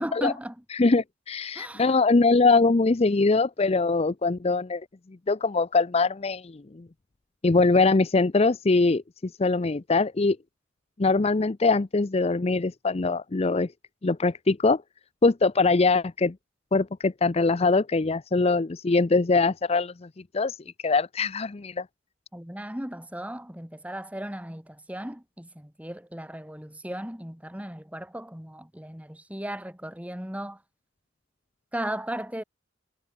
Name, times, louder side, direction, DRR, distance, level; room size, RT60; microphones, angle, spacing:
voice 1, 0.0-0.6 1.6-2.0 22.3-30.6 31.7-32.4, right 1 dB, 5° right, 2.1 m, -36 dB
voice 2, 0.8-4.8 5.3-6.8 7.4-10.4 11.0-13.7 14.0-14.8 15.2-16.3 16.7-20.1 20.3-20.6 20.8-21.8, left 3 dB, 30° left, 0.5 m, -22 dB
head